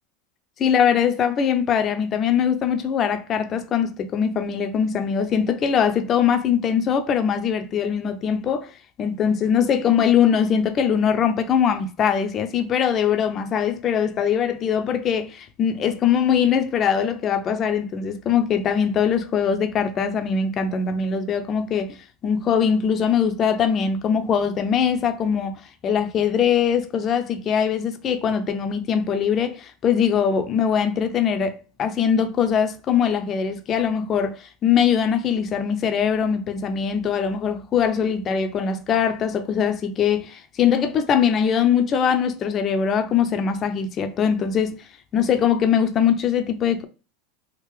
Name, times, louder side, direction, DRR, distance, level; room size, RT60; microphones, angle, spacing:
voice 1, 0.6-8.7 9.0-22.0 22.2-44.8 45.1-46.8, left 7 dB, 35° left, 0.6 m, -22 dB
3.6 x 2.4 x 3.2 m
supercardioid pair, 115°, 0 cm